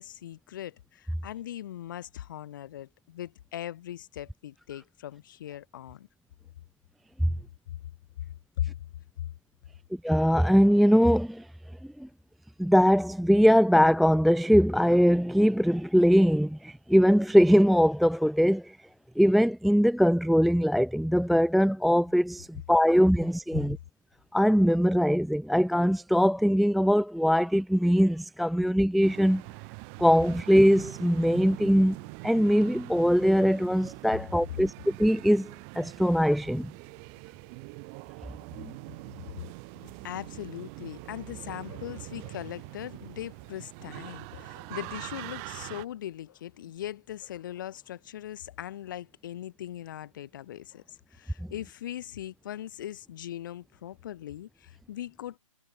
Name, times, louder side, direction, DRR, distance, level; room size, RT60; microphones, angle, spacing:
voice 1, 0.0-6.1 8.6-8.7 39.8-55.4, left 12 dB, 35° left, 6.3 m, -39 dB
voice 2, 10.0-11.5 12.0-12.1 12.6-18.8 19.2-23.8 24.3-29.4 30.0-32.0 32.2-35.5 35.7-36.7 38.6-38.7, equal, ahead, 0.4 m, -22 dB
sound 1, 29.0-45.8, right 40 dB or more, 20° right, 3.3 m, -43 dB
figure-of-eight pair, 135°, 18 cm